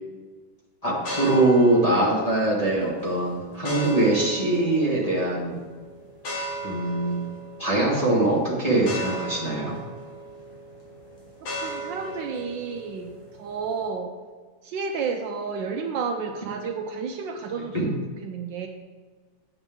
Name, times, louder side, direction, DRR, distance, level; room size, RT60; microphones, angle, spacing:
voice 1, 0.8-5.6 6.6-7.3 7.6-9.8 17.7-17.9, right 2 dB, 20° left, -5 dB, 1.5 m, -22 dB
sound 1, 1.0-13.9, right 1 dB, 85° left, 2.8 m, -37 dB
voice 2, 11.4-14.1 14.6-18.7, right 5 dB, 70° right, 4 dB, 1.2 m, -31 dB
8.0 x 7.1 x 3.7 m, 1.4 s
omnidirectional pair, 2.2 m